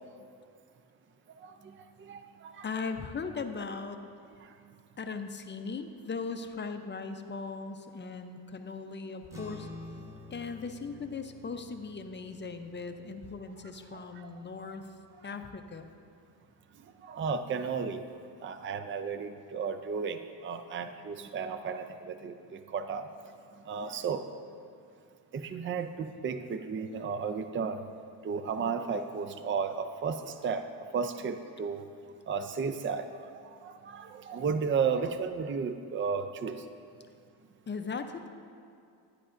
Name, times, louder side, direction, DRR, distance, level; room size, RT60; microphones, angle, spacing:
voice 1, 1.4-2.7 4.4-4.5 13.9-14.3 14.6-14.7 17.0-18.0 18.4-23.1 23.7-24.2 25.3-27.8 28.2-30.7 30.9-31.9 32.3-36.6, right 5 dB, 30° right, 9 dB, 0.4 m, -34 dB
voice 2, 2.6-4.0 5.0-9.7 10.3-14.9 15.2-15.9 37.7-38.3, left 4 dB, 25° left, 7 dB, 0.5 m, -38 dB
sound 1, 9.3-15.9, left 2 dB, 5° right, 1.1 m, -50 dB
11.0 x 10.0 x 2.5 m, 2.4 s
cardioid pair, 85°, 42 cm